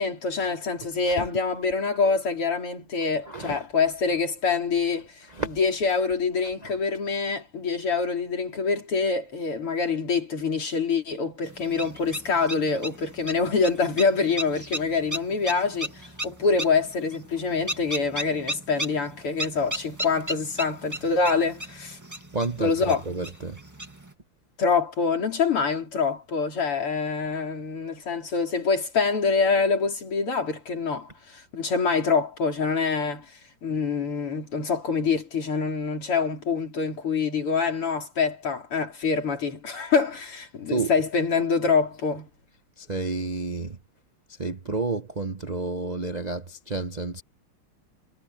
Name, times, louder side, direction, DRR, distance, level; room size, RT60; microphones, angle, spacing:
voice 1, 0.0-5.1 5.4-15.9 16.2-22.0 22.6-23.0 24.6-33.3 33.6-42.3, left 5 dB, 85° left, 4.8 m, -25 dB
voice 2, 3.2-3.6 5.3-5.6 6.6-6.7 22.3-23.6 40.7-40.9 42.8-43.8 44.4-47.2, right 3 dB, 40° right, 0.5 m, -30 dB
sound 1, 11.4-24.1, right 1 dB, 10° right, 1.9 m, -36 dB
omnidirectional pair, 2.4 m